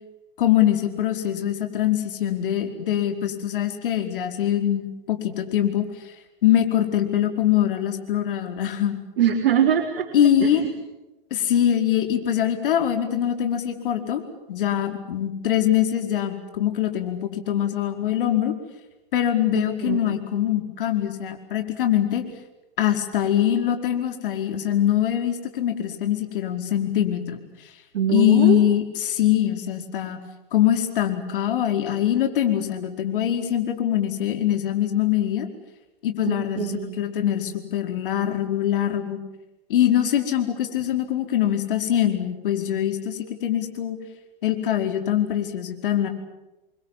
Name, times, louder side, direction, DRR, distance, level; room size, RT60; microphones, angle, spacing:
voice 1, 0.4-5.8 6.4-9.0 10.1-10.6 11.3-14.2 14.5-18.5 19.1-22.2 22.8-27.4 28.1-30.2 30.5-35.5 36.0-39.2 39.7-44.0 44.4-46.1, left 11 dB, 65° left, 6 dB, 4.8 m, -23 dB
voice 2, 9.2-10.7 19.5-20.1 27.9-28.6 36.2-36.9, right 9 dB, 70° right, 1 dB, 4.1 m, -23 dB
29.5 x 24.5 x 7.4 m, 1.0 s
hypercardioid pair, 120°, 29 cm